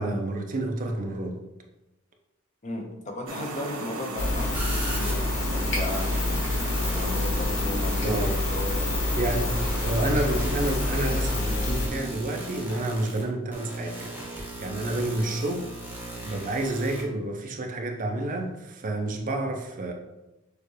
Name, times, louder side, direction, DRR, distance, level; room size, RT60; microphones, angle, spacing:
voice 1, 0.0-1.4 8.0-8.4 9.1-9.5 9.8-15.7 16.2-19.9, right 2 dB, 40° right, 3 dB, 0.5 m, -29 dB
voice 2, 2.6-6.1 6.9-9.1, left 2 dB, 35° left, 1 dB, 0.8 m, -35 dB
sound 1, 3.3-11.0, right 2 dB, 85° right, 0.7 m, -37 dB
sound 2, 4.2-11.9, left 2 dB, 65° left, 0.9 m, -27 dB
sound 3, 4.5-17.0, right 2 dB, 10° right, 0.9 m, -38 dB
6.5 x 2.4 x 3.2 m, 0.97 s
head